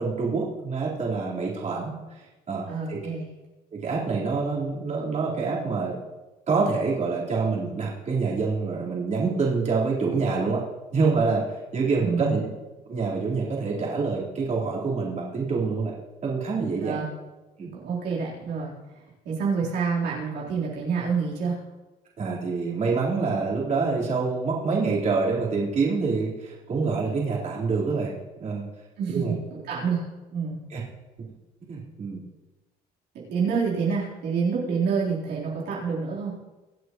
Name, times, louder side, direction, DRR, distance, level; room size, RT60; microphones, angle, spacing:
voice 1, 0.0-3.0 3.7-6.0 6.5-10.6 10.9-11.4 11.7-12.4 12.9-15.9 16.2-17.0 17.6-17.7 22.2-28.1 28.4-28.7 29.1-29.3 30.7-30.8 31.2-31.3 31.7-32.2, right 4 dB, 45° right, -6 dB, 4.2 m, -26 dB
voice 2, 2.7-3.2 12.0-12.4 16.8-17.0 17.8-18.7 19.3-21.5 29.0-30.0 30.3-30.6 33.3-36.3, right 5 dB, 75° right, -6 dB, 3.9 m, -27 dB
24.5 x 8.1 x 3.1 m, 1.1 s
cardioid pair, 110°, 17 cm